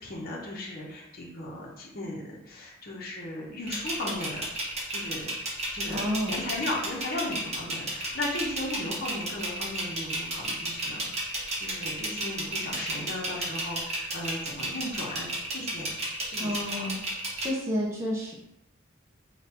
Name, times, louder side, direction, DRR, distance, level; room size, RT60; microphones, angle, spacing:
voice 1, 0.0-4.4 4.9-5.3 5.7-11.1 11.3-15.9 16.3-16.9, left 1 dB, 45° left, -3 dB, 0.9 m, -36 dB
sound 1, 3.7-17.5, right 1 dB, 30° right, 1.0 m, -32 dB
voice 2, 5.9-6.4 16.4-17.0 17.4-18.3, equal, 15° right, -5 dB, 0.6 m, -30 dB
3.9 x 2.4 x 4.3 m, 0.85 s
head